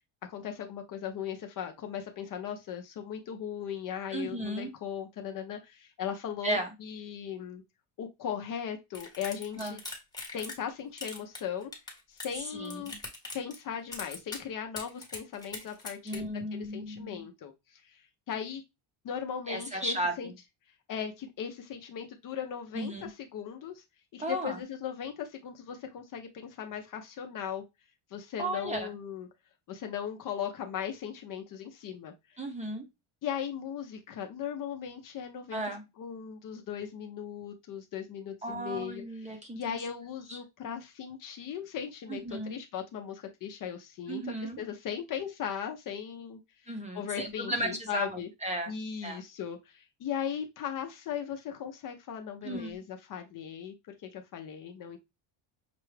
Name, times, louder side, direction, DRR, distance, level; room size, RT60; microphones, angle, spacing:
voice 1, 0.2-7.6 8.0-9.8 10.3-11.7 12.1-12.9 13.3-16.2 16.5-18.0 18.3-18.6 19.0-20.3 20.9-23.8 24.1-27.6 28.1-29.3 29.7-32.1 33.2-35.6 36.0-39.0 39.3-42.2 42.5-46.4 46.9-48.3 48.7-53.7 54.0-55.0, left 8 dB, 40° left, 4 dB, 0.6 m, -38 dB
voice 2, 4.1-4.7 6.4-6.7 9.5-9.8 12.5-13.0 16.0-17.2 19.5-20.3 22.7-23.1 24.2-24.6 28.4-28.9 32.4-32.8 35.5-35.8 38.4-39.8 40.3-40.4 42.1-42.6 44.1-44.6 46.7-49.2 52.4-52.8, right 1 dB, 15° right, 3 dB, 0.6 m, -35 dB
sound 1, 8.9-10.7 11.0-12.4 12.6-13.6 13.9-14.4 14.8-16.2, left 3 dB, 10° left, 0.9 m, -41 dB
5.9 x 2.3 x 3.2 m, 0.22 s
cardioid pair, 175°, 50 cm